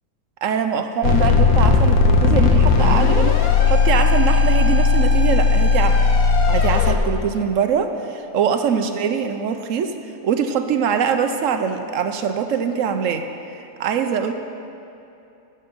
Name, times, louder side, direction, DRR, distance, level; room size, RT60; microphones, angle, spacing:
voice 1, 0.4-6.0 6.5-9.9 10.2-13.3 13.5-14.3, right 7 dB, 65° right, 7 dB, 0.9 m, -23 dB
sound 1, 1.0-6.9, left 4 dB, 75° left, 1.3 m, -16 dB
13.5 x 7.5 x 5.1 m, 2.7 s
omnidirectional pair, 1.6 m